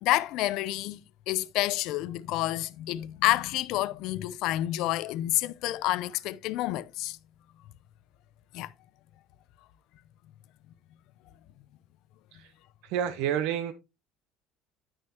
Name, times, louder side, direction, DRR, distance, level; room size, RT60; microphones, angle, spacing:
voice 1, 0.0-1.0 1.3-7.2 8.5-8.7, left 16 dB, 55° left, 0.5 m, -29 dB
voice 2, 12.8-13.7, right 9 dB, 70° right, 0.9 m, -29 dB
10.5 x 6.4 x 2.9 m
cardioid pair, 170°, 0 cm